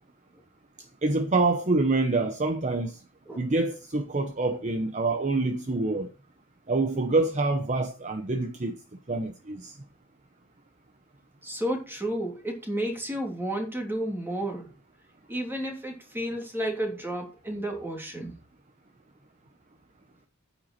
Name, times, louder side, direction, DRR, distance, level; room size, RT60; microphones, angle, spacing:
voice 1, 1.0-3.0 3.4-6.1 6.7-8.8 9.1-9.7, right 3 dB, 35° right, 0.9 m, -26 dB
voice 2, 11.4-14.7 15.3-18.3, right 1 dB, 10° right, 3.1 m, -32 dB
9.4 x 9.0 x 4.4 m
head